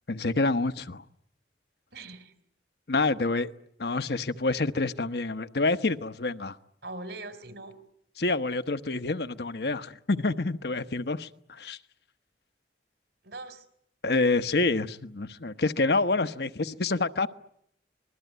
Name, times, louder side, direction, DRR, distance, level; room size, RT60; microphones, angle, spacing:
voice 1, 0.1-1.0 2.9-3.5 3.8-6.6 8.2-11.8 14.0-17.3, left 3 dB, 65° left, 1.0 m, -27 dB
voice 2, 1.9-2.3 6.8-7.8 13.2-13.6, right 2 dB, 75° right, 3.6 m, -41 dB
26.5 x 21.0 x 9.4 m
head